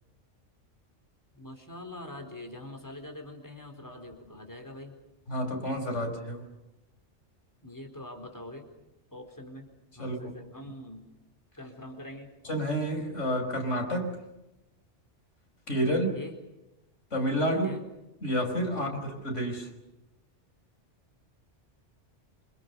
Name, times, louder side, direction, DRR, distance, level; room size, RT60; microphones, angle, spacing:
voice 1, 1.3-4.9 7.6-8.7 9.1-9.7 9.9-11.1 11.6-12.3 15.9-16.4 17.5-17.8 18.7-19.0, left 1 dB, 15° left, 3 dB, 4.4 m, -44 dB
voice 2, 5.3-6.5 10.0-10.2 12.4-14.2 15.7-16.2 17.1-17.7 18.2-19.7, equal, 90° left, 4 dB, 5.6 m, -29 dB
27.5 x 27.5 x 7.0 m, 0.93 s
omnidirectional pair, 1.2 m